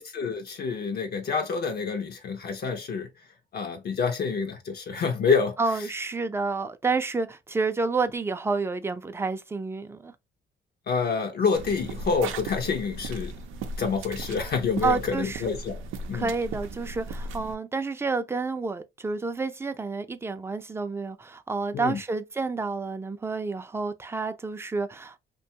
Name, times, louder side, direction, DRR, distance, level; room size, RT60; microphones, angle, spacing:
voice 1, 0.0-3.1 3.5-5.6 10.9-13.3 13.8-15.8 16.1-16.3 21.7-22.0, left 5 dB, 55° left, 0.5 m, -27 dB
voice 2, 5.6-10.1 14.8-15.4 16.1-25.1, right 4 dB, 10° right, 0.4 m, -29 dB
sound 1, 11.5-17.5, right 3 dB, 90° right, 0.5 m, -37 dB
2.6 x 2.2 x 2.7 m
cardioid pair, 90°, 20 cm